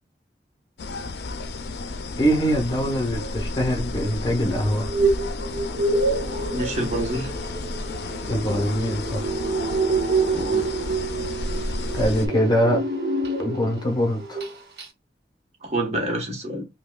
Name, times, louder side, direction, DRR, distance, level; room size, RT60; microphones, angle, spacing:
sound 1, 0.8-12.3, left 2 dB, 65° left, 0.5 m, -32 dB
voice 1, 2.2-4.9 8.3-9.3 11.9-12.8 13.4-14.4, equal, 25° left, 0.9 m, -23 dB
sound 2, 4.7-13.9 14.2-14.5 14.8-14.9, right 3 dB, 65° right, 0.9 m, -27 dB
voice 2, 6.5-7.3 10.3-10.7 15.6-16.7, right 1 dB, 40° right, 1.0 m, -27 dB
5.5 x 2.2 x 2.2 m
head